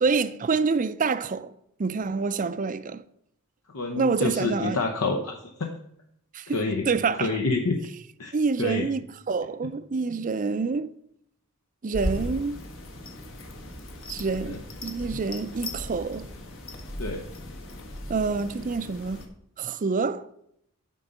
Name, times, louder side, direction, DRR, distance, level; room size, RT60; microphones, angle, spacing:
voice 1, 0.0-1.5 1.8-3.0 4.0-4.8 6.3-7.3 8.3-10.9 11.8-12.6 14.1-14.6 14.8-16.3 18.1-19.3 19.6-20.3, right 4 dB, 35° right, 0.4 m, -27 dB
voice 2, 3.7-5.7 6.5-6.9 7.2-7.8 8.2-8.3 8.6-8.8 14.4-14.6 15.1-15.2 17.0-17.2, left 3 dB, 75° left, 0.9 m, -28 dB
sound 1, 11.9-19.3, left 1 dB, 60° left, 1.4 m, -37 dB
9.1 x 3.9 x 6.7 m
head